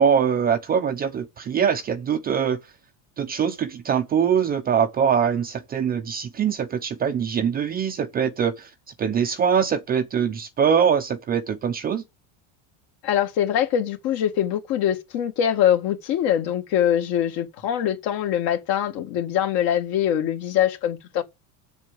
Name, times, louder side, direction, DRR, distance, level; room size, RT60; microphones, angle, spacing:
voice 1, 0.0-2.6 3.2-8.7 9.0-12.0, right 7 dB, 20° right, 0.6 m, -23 dB
voice 2, 13.0-21.2, left 10 dB, 55° left, 2.0 m, -23 dB
7.6 x 7.1 x 6.9 m
cardioid pair, 155°, 43 cm